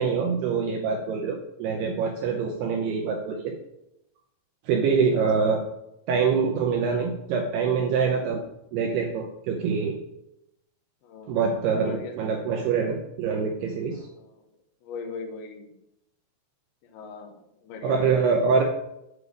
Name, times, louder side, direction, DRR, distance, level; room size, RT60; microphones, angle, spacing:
voice 1, 0.0-3.5 4.7-5.6 6.1-8.4 8.7-10.0 11.3-14.1 17.8-18.6, right 5 dB, 80° right, 2 dB, 2.3 m, -25 dB
voice 2, 11.0-11.4 11.7-12.1 13.9-14.2 14.8-15.7 16.9-17.3 17.6-18.2 18.6-18.7, left 4 dB, 70° left, 2 dB, 2.6 m, -39 dB
8.3 x 6.8 x 4.9 m, 0.84 s
omnidirectional pair, 5.6 m